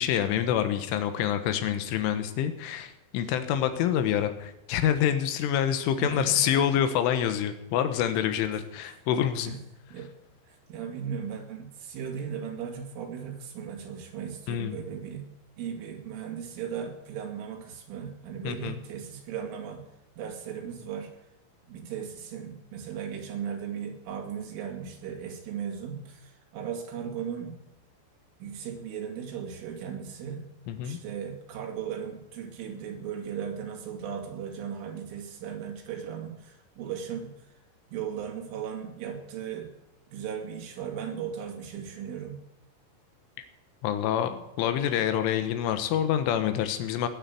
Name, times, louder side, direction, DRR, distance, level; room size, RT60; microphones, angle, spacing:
voice 1, 0.0-9.5 14.5-14.8 18.5-18.8 30.7-31.0 43.4-43.5 43.8-47.1, left 10 dB, 85° left, 9 dB, 3.7 m, -27 dB
voice 2, 6.0-6.6 9.5-9.6 9.9-10.1 10.5-15.3 15.6-19.8 20.2-21.1 21.7-27.5 28.4-30.4 30.8-37.3 37.9-39.7 40.1-42.4, right 7 dB, 90° right, 2 dB, 4.9 m, -37 dB
19.0 x 8.1 x 8.4 m, 0.87 s
omnidirectional pair, 5.5 m